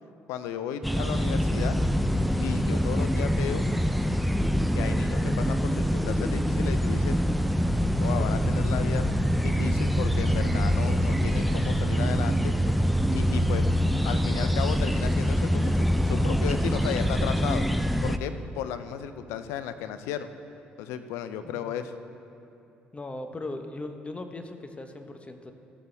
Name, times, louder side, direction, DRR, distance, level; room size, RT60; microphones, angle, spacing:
voice 1, 0.3-1.8 2.4-3.6 4.7-7.2 8.0-12.5 13.1-13.7 14.1-17.7 18.0-20.3 20.8-21.9, left 9 dB, 80° left, 10 dB, 0.5 m, -34 dB
sound 1, 0.8-18.2, equal, ahead, 0.5 m, -25 dB
voice 2, 21.4-21.8 22.9-25.5, left 2 dB, 25° left, 6 dB, 1.0 m, -38 dB
15.5 x 6.9 x 3.4 m, 2.9 s
supercardioid pair, 60°, 5 cm